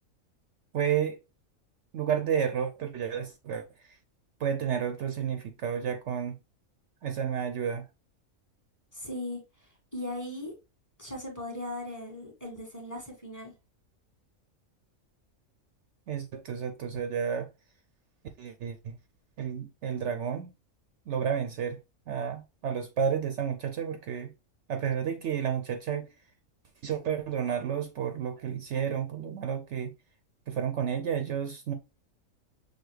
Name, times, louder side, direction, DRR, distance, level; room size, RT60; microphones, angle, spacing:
voice 1, 0.7-1.2 1.9-4.0 4.4-6.4 7.0-7.8 16.1-17.5 18.4-19.0 19.4-20.5 21.1-21.8 22.1-24.3 24.7-26.1 26.8-29.9 30.5-31.7, right 8 dB, 65° right, 0.8 m, -31 dB
voice 2, 8.9-9.4 9.9-10.5 11.0-13.5, left 1 dB, 15° left, 1.5 m, -38 dB
6.4 x 2.3 x 3.1 m
omnidirectional pair, 1.4 m